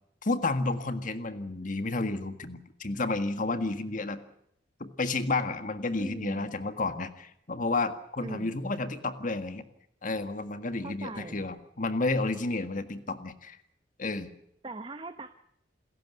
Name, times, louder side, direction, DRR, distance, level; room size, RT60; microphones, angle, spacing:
voice 1, 0.2-4.2 4.8-9.6 10.0-13.6 14.0-14.3, left 3 dB, 45° left, 9 dB, 1.8 m, -31 dB
voice 2, 6.0-6.6 8.2-8.7 10.8-11.5 14.6-15.4, right 2 dB, 30° right, 9 dB, 0.9 m, -41 dB
28.0 x 14.5 x 9.1 m, 0.76 s
head